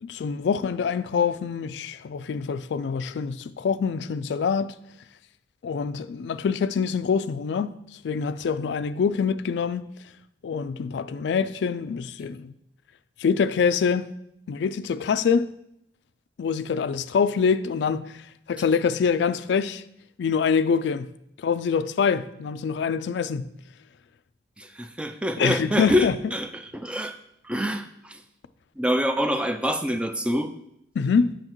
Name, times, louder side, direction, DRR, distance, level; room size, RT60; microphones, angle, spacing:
voice 1, 0.0-4.8 5.6-9.9 10.4-12.5 13.2-14.1 14.5-15.5 16.4-18.2 18.5-19.8 20.2-21.1 21.4-23.5 25.4-26.3 31.0-31.4, left 6 dB, 85° left, 0.3 m, -25 dB
voice 2, 24.6-26.5 26.7-27.1 27.5-27.8 28.8-30.5, equal, 5° right, 0.3 m, -25 dB
7.8 x 6.4 x 3.0 m
head